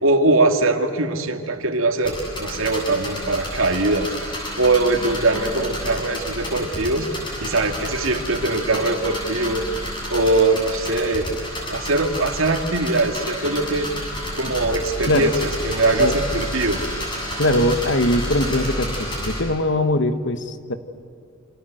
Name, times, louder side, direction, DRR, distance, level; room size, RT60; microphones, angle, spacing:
voice 1, 0.0-7.1 7.4-11.3 11.6-13.9 14.3-16.8, right 2 dB, 75° right, 6 dB, 2.3 m, -21 dB
sound 1, 2.0-19.4, equal, 20° left, 7.8 m, -30 dB
voice 2, 17.4-20.7, left 1 dB, 60° left, 10 dB, 1.5 m, -21 dB
28.5 x 26.0 x 8.0 m, 2.5 s
head